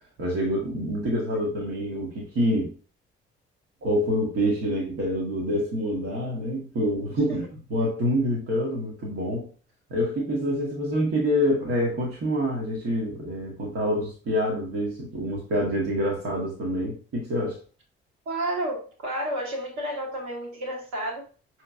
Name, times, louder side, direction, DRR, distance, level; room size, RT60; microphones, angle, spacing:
voice 1, 0.2-2.7 3.8-9.5 9.9-17.6, equal, 50° right, -2 dB, 1.2 m, -26 dB
voice 2, 18.2-21.2, right 1 dB, 65° right, -2 dB, 1.6 m, -31 dB
5.6 x 2.9 x 2.4 m, 0.36 s
figure-of-eight pair, 40°, 30 cm